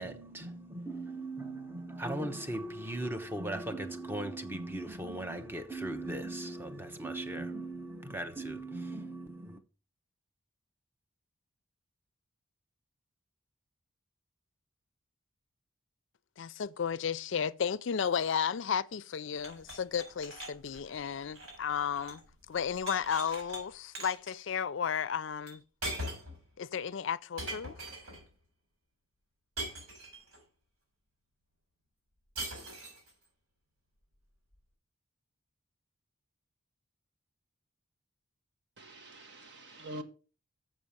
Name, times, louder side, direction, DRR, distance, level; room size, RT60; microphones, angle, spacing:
voice 1, 0.0-9.6, right 1 dB, 10° right, 0.8 m, -38 dB
voice 2, 16.4-22.2 22.5-25.6 26.6-27.7, left 7 dB, 65° left, 0.4 m, -33 dB
sound 1, 19.4-22.3 22.6-23.6 24.0-24.3 25.5-25.6 25.8-26.4 27.4-28.2 29.6-30.4 32.4-33.1, right 1 dB, 90° right, 4.4 m, -41 dB
voice 3, 38.8-40.0, equal, 55° right, 1.4 m, -45 dB
7.3 x 6.4 x 7.1 m
head